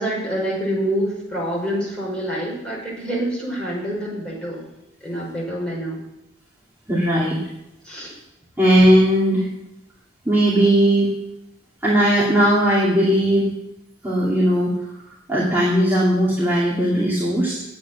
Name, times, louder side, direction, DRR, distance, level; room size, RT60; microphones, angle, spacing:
voice 1, 0.0-4.7 5.0-6.0 7.8-8.1, right 1 dB, 5° left, -5 dB, 5.0 m, -26 dB
voice 2, 6.9-7.4 8.6-9.5 10.3-11.1 11.8-13.5 14.0-14.7 15.3-17.6, right 1 dB, 10° right, -8 dB, 2.5 m, -17 dB
8.8 x 8.4 x 9.4 m, 0.84 s
head